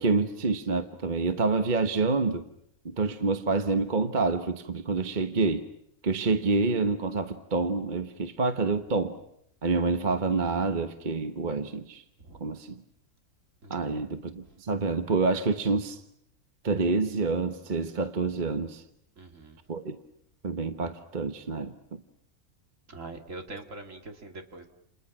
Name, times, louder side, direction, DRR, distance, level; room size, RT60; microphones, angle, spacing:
voice 1, 0.0-2.5 2.8-5.6 6.0-9.2 9.6-12.0 12.4-12.8 13.7-16.0 16.6-18.8 19.7-20.0 20.4-21.7, right 3 dB, 35° right, 1.3 m, -27 dB
voice 2, 13.6-14.0 19.2-19.6 22.9-24.7, right 2 dB, 60° right, 2.9 m, -43 dB
30.0 x 29.0 x 6.1 m
omnidirectional pair, 1.5 m